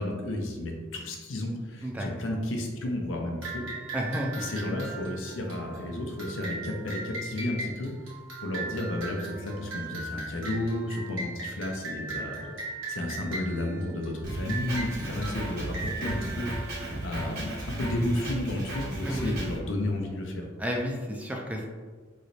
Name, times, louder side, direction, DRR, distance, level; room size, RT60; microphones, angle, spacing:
voice 1, 0.0-3.6 4.4-7.9 8.4-12.6 12.9-16.5 17.0-20.5, left 1 dB, 80° left, 1 dB, 0.6 m, -32 dB
sound 1, 3.4-17.5, right 3 dB, 90° right, 1.2 m, -39 dB
voice 2, 3.9-4.4 15.0-15.4 19.0-19.3 20.6-21.7, equal, 10° right, 0 dB, 0.3 m, -32 dB
Drum kit, 14.2-19.6, right 1 dB, 55° right, 1.4 m, -35 dB
3.1 x 3.0 x 2.6 m, 1.4 s
head